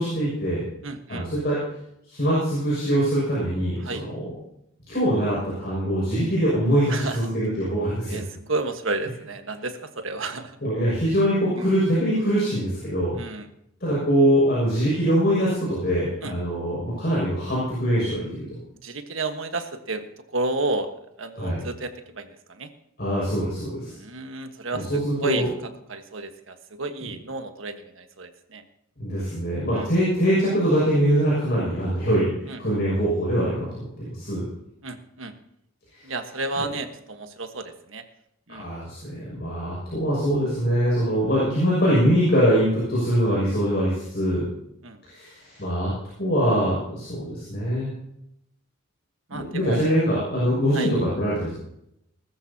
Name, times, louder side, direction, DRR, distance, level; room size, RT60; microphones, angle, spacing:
voice 1, 0.0-0.7 1.1-1.6 2.1-4.3 4.9-8.2 10.6-13.2 13.8-18.5 21.4-21.7 23.0-23.9 24.7-25.5 29.0-34.4 35.9-36.0 38.5-44.5 45.0-45.9 46.2-47.9 49.3-51.5, equal, 50° left, -7 dB, 6.5 m, -23 dB
voice 2, 0.8-1.3 3.8-4.0 6.9-7.2 8.1-10.6 11.6-11.7 13.2-13.5 16.2-16.3 18.8-20.9 21.2-22.7 23.9-25.5 25.9-28.6 29.7-29.9 32.5-32.6 34.8-35.3 36.0-38.0 38.5-38.7 44.8-45.0 49.3-50.0 50.7-50.9, right 2 dB, 70° right, 7 dB, 1.4 m, -31 dB
20.0 x 14.0 x 2.9 m, 0.78 s
head